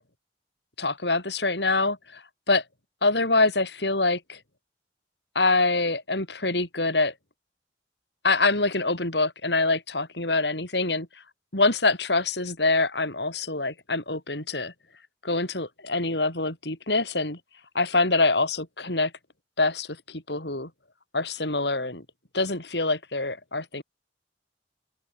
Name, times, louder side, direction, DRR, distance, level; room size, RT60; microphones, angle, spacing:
voice 1, 0.8-2.6 3.0-4.4 5.4-7.1 8.2-11.1 11.5-14.7 15.2-17.4 17.7-19.1 19.6-20.7 21.1-22.0 22.3-23.8, left 3 dB, 70° left, 7.2 m, -25 dB
open air
head